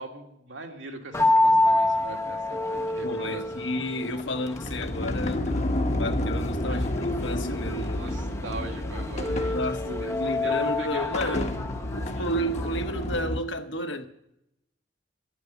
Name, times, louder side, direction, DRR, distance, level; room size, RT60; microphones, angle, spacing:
voice 1, 0.0-3.4 6.7-6.8 7.9-9.6 9.8-10.1 10.4-11.5 12.2-12.3, right 2 dB, 90° right, 2.3 m, -40 dB
sound 1, 1.1-13.1, left 2 dB, 15° left, 0.7 m, -28 dB
voice 2, 3.0-8.1 9.5-11.6 11.9-14.0, left 1 dB, 75° left, 1.3 m, -32 dB
Sliding door, 4.2-13.4, left 1 dB, 40° left, 1.1 m, -30 dB
12.0 x 8.7 x 9.4 m
head